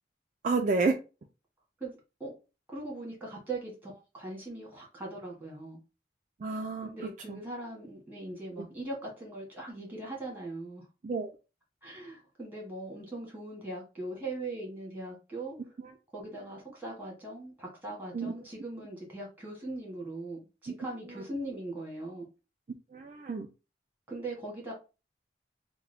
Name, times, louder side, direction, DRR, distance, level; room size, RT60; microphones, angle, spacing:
voice 1, 0.4-1.0 6.4-6.9 7.3-7.4 8.6-8.7 11.0-11.3 15.8-15.9 18.1-18.4 20.7-20.8 21.1-21.2 22.9-23.5, right 3 dB, 45° right, 0.3 m, -30 dB
voice 2, 1.8-2.3 2.7-5.8 6.8-10.8 11.8-15.6 16.1-22.3 24.1-24.7, right 2 dB, 10° right, 1.5 m, -40 dB
3.6 x 2.2 x 3.3 m
head